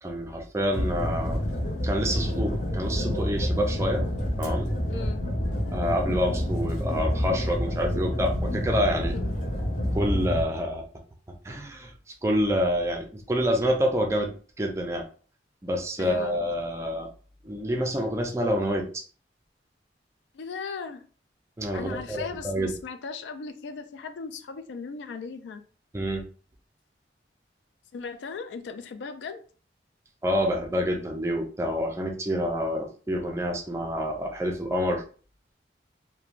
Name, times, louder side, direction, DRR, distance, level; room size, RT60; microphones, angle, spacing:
voice 1, 0.0-1.4 1.8-4.0 4.4-4.7 5.7-9.1 9.9-10.8 11.4-11.9 12.2-15.1 15.6-17.1 17.4-19.0 21.6-22.7 25.9-26.2 30.2-35.0, equal, 15° right, 2 dB, 0.4 m, -27 dB
sound 1, 0.7-10.4, equal, 45° left, 1.0 m, -28 dB
voice 2, 4.9-5.2 9.1-9.3 16.0-16.4 20.3-21.0 21.7-25.6 27.9-29.4, left 5 dB, 85° left, 9 dB, 0.3 m, -37 dB
2.9 x 2.1 x 2.5 m, 0.40 s
head